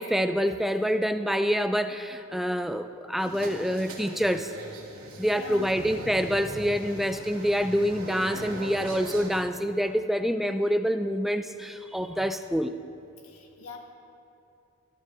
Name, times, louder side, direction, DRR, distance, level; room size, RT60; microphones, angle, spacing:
voice 1, 0.0-4.5 5.2-12.8, equal, ahead, 9 dB, 0.3 m, -26 dB
sound 1, 3.2-9.3, right 1 dB, 80° right, 2.4 m, -40 dB
voice 2, 5.3-5.8 13.2-13.8, left 5 dB, 85° left, 1 dB, 1.7 m, -42 dB
19.0 x 12.5 x 3.6 m, 2.7 s
head